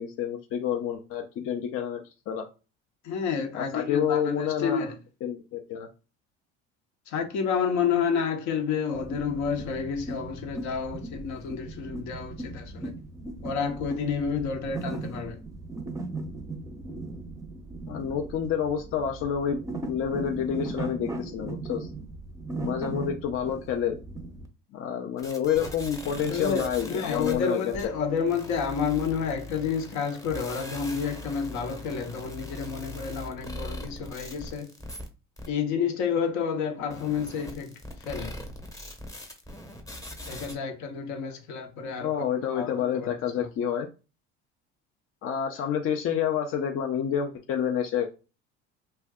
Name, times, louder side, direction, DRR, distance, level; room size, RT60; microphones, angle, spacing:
voice 1, 0.0-2.4 3.5-4.9 5.2-5.9 17.9-21.9 22.6-24.0 24.7-27.7 42.0-43.9 45.2-48.1, left 8 dB, 45° left, 0.5 m, -29 dB
voice 2, 3.0-4.9 7.1-12.9 13.4-15.4 26.3-34.7 35.5-37.7 38.0-38.3 40.3-42.1 42.5-43.1, left 6 dB, 65° left, 0.9 m, -30 dB
sound 1, 8.9-24.5, right 2 dB, 10° right, 0.6 m, -38 dB
sound 2, 25.2-35.1 35.4-35.5 36.9-40.5, left 1 dB, 10° left, 0.9 m, -41 dB
2.5 x 2.2 x 3.5 m
supercardioid pair, 85°, 30 cm